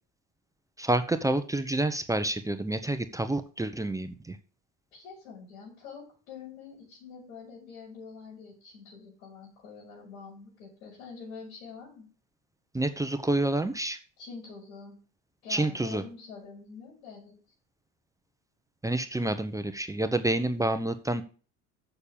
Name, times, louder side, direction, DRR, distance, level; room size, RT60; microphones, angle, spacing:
voice 1, 0.8-4.4 12.7-14.0 15.5-16.0 18.8-21.2, right 2 dB, 10° right, 9 dB, 0.8 m, -28 dB
voice 2, 4.9-12.1 14.2-15.0 15.4-17.3, left 5 dB, 80° left, -7 dB, 5.7 m, -46 dB
6.8 x 6.6 x 7.3 m, 0.39 s
hypercardioid pair, 90°, 42 cm